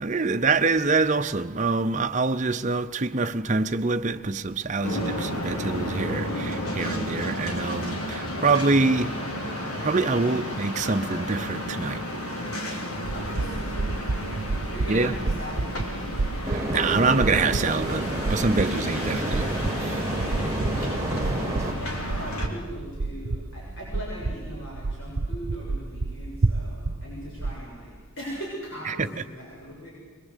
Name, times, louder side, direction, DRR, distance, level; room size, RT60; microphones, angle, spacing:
voice 1, 0.0-9.2 9.8-12.0 14.9-15.3 16.5-19.5 19.8-20.0 28.9-29.1, right 3 dB, 35° right, 0.7 m, -25 dB
sound 1, 4.8-22.5, equal, 90° left, 3.6 m, -32 dB
sound 2, 12.9-27.6, right 3 dB, 80° right, 0.8 m, -31 dB
voice 2, 13.1-16.1 20.5-29.9, equal, 60° left, 6.8 m, -39 dB
sound 3, 16.4-21.7, right 1 dB, 15° right, 1.9 m, -30 dB
22.5 x 21.5 x 8.2 m
head